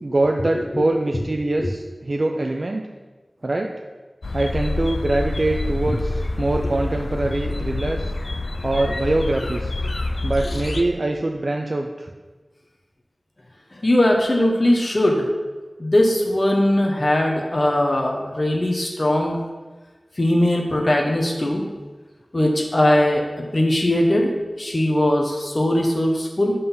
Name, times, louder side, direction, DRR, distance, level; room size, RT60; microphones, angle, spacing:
voice 1, 0.0-2.8 3.4-3.7 4.3-8.0 8.6-9.7 10.2-12.1, right 2 dB, 50° right, 2 dB, 0.5 m, -23 dB
sound 1, 4.2-10.8, left 2 dB, 70° left, 0.5 m, -27 dB
voice 2, 13.8-15.3 15.8-19.4 20.2-21.6 22.3-23.2 23.5-24.3 24.6-26.5, left 1 dB, 40° left, 0 dB, 1.0 m, -19 dB
7.6 x 4.1 x 5.5 m, 1.3 s
wide cardioid pair, 45°, 0 cm